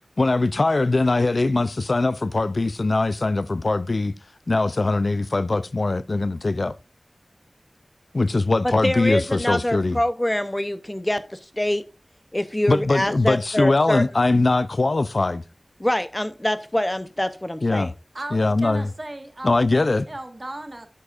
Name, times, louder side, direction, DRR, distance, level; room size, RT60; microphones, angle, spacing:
voice 1, 0.2-4.1 4.5-6.7 8.1-10.0 12.7-15.4 17.6-17.9 18.3-18.9 19.4-20.1, left 2 dB, 65° left, 0.4 m, -21 dB
voice 2, 8.6-11.8 12.3-14.0 15.8-17.9, left 1 dB, 20° left, 0.6 m, -25 dB
voice 3, 18.1-20.9, right 1 dB, 40° right, 1.4 m, -36 dB
10.0 x 8.3 x 2.4 m
wide cardioid pair, 65°, 0 cm